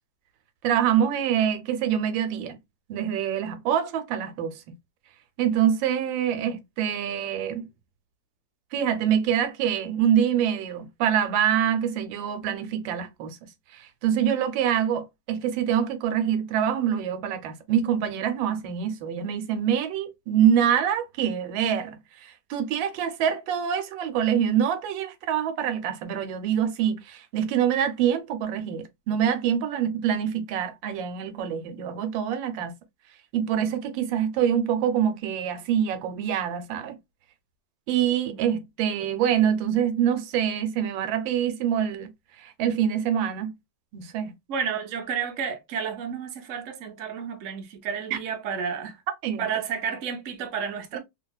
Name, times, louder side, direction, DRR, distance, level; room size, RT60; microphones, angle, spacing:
voice 1, 0.6-2.6 2.9-4.8 5.4-7.7 8.7-13.4 13.7-22.0 22.2-32.7 33.3-36.9 37.9-42.1 42.4-43.5 43.9-44.3 48.1-48.2 49.2-49.4, right 9 dB, 90° right, 1.4 m, -25 dB
voice 2, 44.5-49.0 49.4-51.0, right 7 dB, 60° right, 0.8 m, -31 dB
2.9 x 2.8 x 2.3 m
omnidirectional pair, 2.0 m